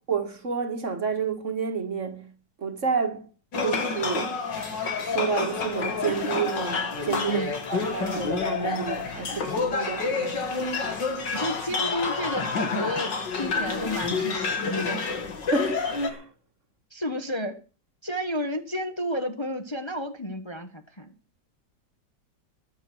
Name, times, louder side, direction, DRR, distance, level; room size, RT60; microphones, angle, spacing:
voice 1, 0.1-2.3 2.6-3.3 3.6-4.4 5.0-7.4 7.7-10.6 15.5-16.3, right 6 dB, 45° right, 1.9 m, -30 dB
sound 1, 3.5-16.1, left 4 dB, 85° left, 2.9 m, -28 dB
voice 2, 11.3-15.1 16.9-17.6 18.0-21.1, equal, 15° left, 1.2 m, -32 dB
22.5 x 7.5 x 6.2 m
omnidirectional pair, 1.9 m